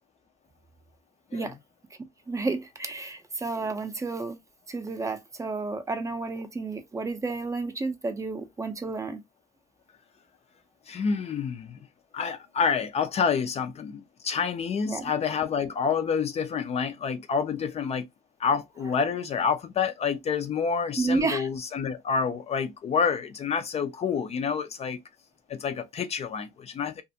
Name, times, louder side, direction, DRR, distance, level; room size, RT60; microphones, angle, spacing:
voice 1, 2.3-4.4 4.7-9.2 14.9-15.1 21.0-21.5, right 3 dB, 20° right, 0.5 m, -31 dB
voice 2, 10.9-11.8 12.1-18.1 18.4-25.0 25.5-27.0, left 6 dB, 40° left, 0.4 m, -28 dB
2.5 x 2.4 x 2.6 m
cardioid pair, 110°, 17 cm